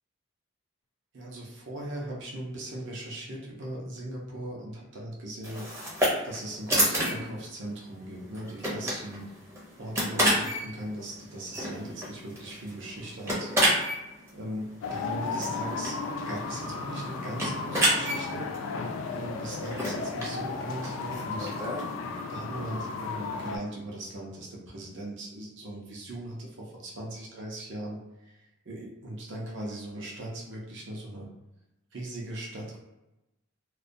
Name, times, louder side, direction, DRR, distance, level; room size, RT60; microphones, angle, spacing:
voice 1, 1.1-9.3 9.8-13.5 14.3-16.0 16.3-21.5 22.3-28.4 28.7-31.3 31.9-32.8, right 1 dB, 65° right, -2 dB, 0.6 m, -39 dB
sound 1, 5.4-21.9, equal, 15° right, 0.5 m, -31 dB
sound 2, 14.8-23.6, left 4 dB, 75° left, 0.3 m, -35 dB
2.3 x 2.2 x 2.6 m, 0.95 s
head